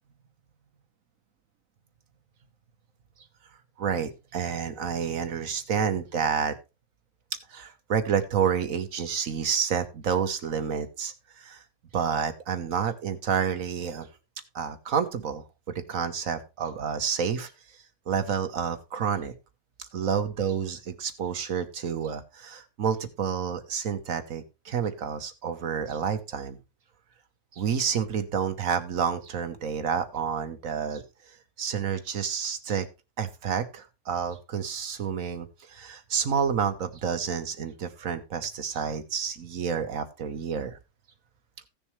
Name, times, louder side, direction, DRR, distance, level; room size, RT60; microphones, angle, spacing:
voice 1, 3.8-6.6 7.5-11.6 11.9-14.1 14.5-17.5 18.1-19.3 19.9-26.6 27.5-31.0 31.6-32.9 33.2-40.8, right 7 dB, 65° right, 9 dB, 1.4 m, -29 dB
16.0 x 6.9 x 3.1 m, 0.28 s
omnidirectional pair, 1.6 m